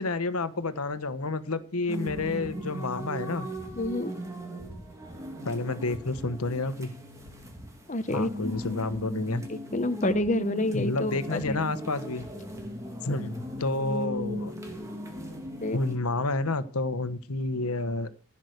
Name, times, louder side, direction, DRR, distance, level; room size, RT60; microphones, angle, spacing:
voice 1, 0.0-3.5 5.4-6.9 8.1-9.4 10.7-12.3 13.0-14.5 15.7-18.1, left 2 dB, 80° left, 13 dB, 1.2 m, -30 dB
sound 1, 1.9-16.0, equal, 15° right, 2.4 m, -38 dB
voice 2, 3.8-4.1 7.9-8.5 9.5-11.7 15.6-15.8, left 2 dB, 35° left, 12 dB, 0.9 m, -29 dB
15.5 x 6.0 x 6.6 m, 0.37 s
head